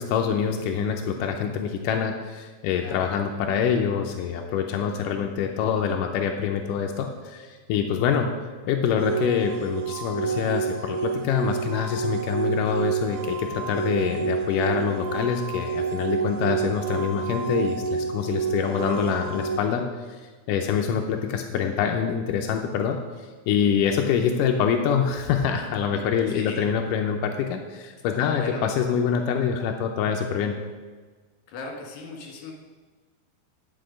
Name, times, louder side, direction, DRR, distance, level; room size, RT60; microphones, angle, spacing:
voice 1, 0.0-8.3 8.7-23.0 23.5-30.6, left 7 dB, 80° left, 3 dB, 1.9 m, -25 dB
voice 2, 2.7-3.1 18.5-18.8 25.9-26.7 28.1-28.6 31.5-32.5, left 3 dB, 60° left, 0 dB, 2.6 m, -38 dB
sound 1, 9.0-19.6, right 6 dB, 85° right, 2.8 m, -29 dB
9.7 x 6.6 x 5.1 m, 1.4 s
omnidirectional pair, 4.4 m